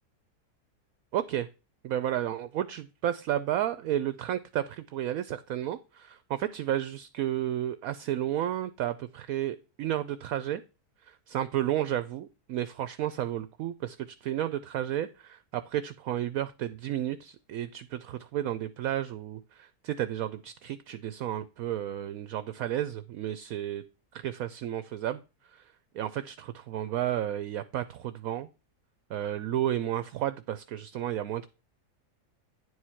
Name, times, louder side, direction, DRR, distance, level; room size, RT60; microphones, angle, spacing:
voice 1, 1.1-1.5 1.8-10.6 11.1-23.8 24.1-25.2 25.9-28.5 29.1-31.5, right 11 dB, 70° right, 13 dB, 1.0 m, -32 dB
10.0 x 4.8 x 5.6 m, 0.30 s
omnidirectional pair, 1.7 m